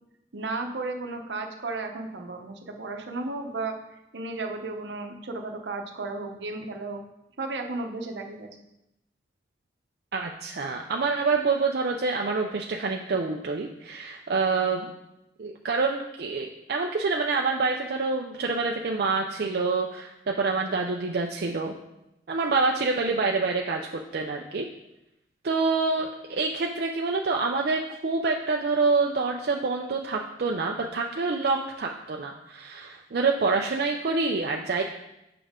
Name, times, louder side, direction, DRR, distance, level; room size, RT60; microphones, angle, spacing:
voice 1, 0.3-3.8 4.1-7.0 7.4-8.5, right 3 dB, 80° right, 4 dB, 0.8 m, -34 dB
voice 2, 10.1-14.9 15.4-21.7 22.3-24.7 25.4-34.8, right 4 dB, 60° right, 1 dB, 0.4 m, -27 dB
6.7 x 5.3 x 3.7 m, 0.90 s
head